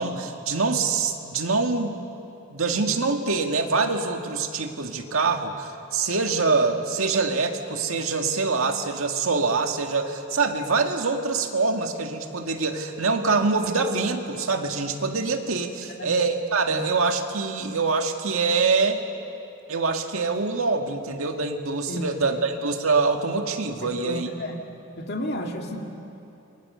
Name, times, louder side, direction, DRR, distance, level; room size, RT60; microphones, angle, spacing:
voice 1, 0.0-2.0 2.5-19.0 19.7-24.3, right 4 dB, 90° right, 4 dB, 1.9 m, -25 dB
voice 2, 23.8-24.6 25.0-25.8, equal, 50° left, 2 dB, 2.3 m, -32 dB
28.5 x 23.5 x 6.8 m, 2.8 s
head